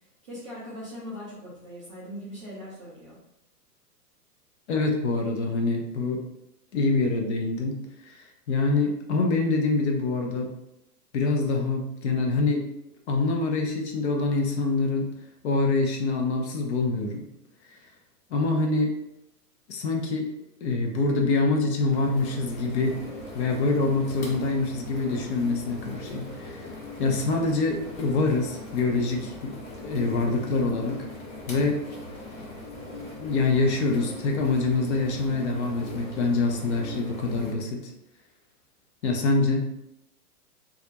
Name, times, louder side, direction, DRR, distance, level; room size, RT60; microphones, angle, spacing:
voice 1, 0.2-3.2, equal, 25° right, -10 dB, 0.3 m, -40 dB
voice 2, 4.7-6.2 6.7-7.8 8.0-10.5 11.1-12.6 13.1-15.1 15.4-17.2 18.3-18.9 19.7-20.3 20.6-23.0 23.3-26.6 27.0-31.0 31.5-31.8 33.2-37.9 39.0-39.6, left 3 dB, 45° left, 1 dB, 0.5 m, -25 dB
sound 1, 21.9-37.5, left 2 dB, 65° left, 1.0 m, -40 dB
2.3 x 2.0 x 2.8 m, 0.85 s
hypercardioid pair, 115°, 49 cm